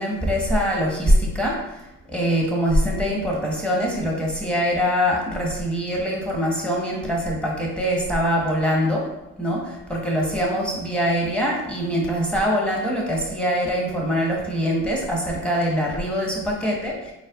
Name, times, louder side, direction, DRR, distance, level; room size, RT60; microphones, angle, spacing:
voice 1, 0.0-9.1 9.4-16.9, equal, 5° left, -2 dB, 1.1 m, -23 dB
4.0 x 2.3 x 2.4 m, 0.93 s
hypercardioid pair, 50°, 39 cm